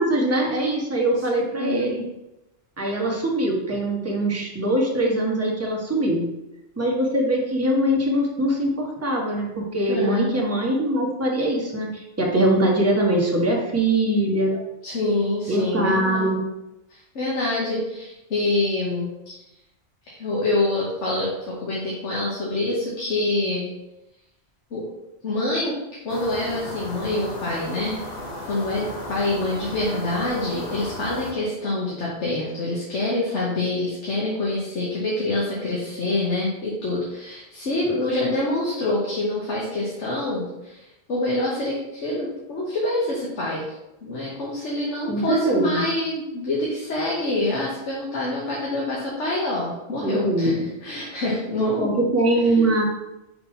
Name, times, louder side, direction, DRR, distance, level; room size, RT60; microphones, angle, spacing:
voice 1, 0.0-2.0 2.8-6.3 6.8-14.6 15.5-16.4 45.1-45.8 50.0-50.6 51.8-52.8, right 1 dB, 15° right, -2 dB, 1.1 m, -22 dB
voice 2, 1.6-1.9 9.9-10.4 14.8-16.4 16.9-19.3 20.1-23.7 24.7-24.8 25.2-25.7 26.0-28.0 28.5-43.7 44.0-52.1 52.4-52.5, left 2 dB, 75° left, -5 dB, 1.5 m, -26 dB
sound 1, 26.1-31.3, left 1 dB, 40° left, 1.2 m, -35 dB
4.8 x 3.8 x 5.4 m, 0.94 s
omnidirectional pair, 1.2 m